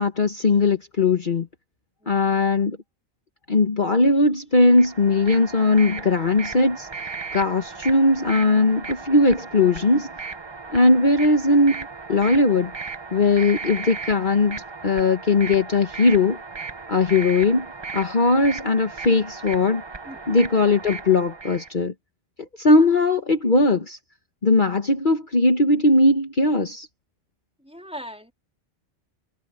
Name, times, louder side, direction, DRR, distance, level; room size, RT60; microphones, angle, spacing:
voice 1, 0.0-1.5 2.1-2.8 3.5-6.9 7.3-10.1 10.7-12.7 13.1-16.4 16.9-17.7 17.9-19.8 20.3-21.9 22.4-24.0 24.4-26.9, left 2 dB, 45° left, 1.4 m, -19 dB
voice 2, 2.0-2.5 20.1-20.2 27.6-28.3, equal, 5° right, 3.7 m, -40 dB
sound 1, 4.6-21.7, right 4 dB, 25° right, 0.7 m, -36 dB
omnidirectional pair, 1.2 m